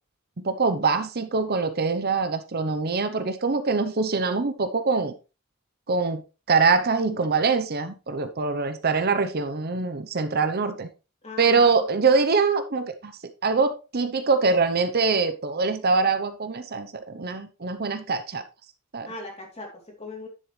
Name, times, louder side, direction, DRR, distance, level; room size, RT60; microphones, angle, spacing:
voice 1, 0.4-5.1 5.9-6.2 6.5-10.9 11.4-13.1 13.4-18.4 18.9-19.1, right 4 dB, 45° right, 0.8 m, -24 dB
voice 2, 11.2-11.7 19.0-20.3, left 2 dB, 30° left, 3.1 m, -39 dB
10.0 x 7.2 x 3.2 m
head